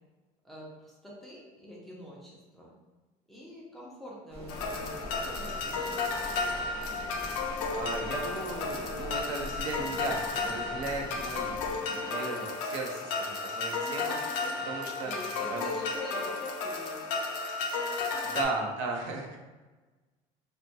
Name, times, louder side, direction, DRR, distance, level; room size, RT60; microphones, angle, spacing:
voice 1, 0.4-2.7 3.3-6.0 13.7-17.1 18.1-18.4, equal, ahead, -5 dB, 0.3 m, -45 dB
sound 1, 4.3-11.8, left 1 dB, 45° right, 0.7 m, -43 dB
sound 2, 4.5-18.5, left 4 dB, 70° left, 0.4 m, -33 dB
voice 2, 7.7-11.6 11.9-14.2 14.7-15.1 15.5-15.7 18.2-19.4, right 3 dB, 90° right, 1 dB, 0.5 m, -36 dB
2.2 x 2.1 x 2.6 m, 1.2 s
cardioid pair, 180°, 15 cm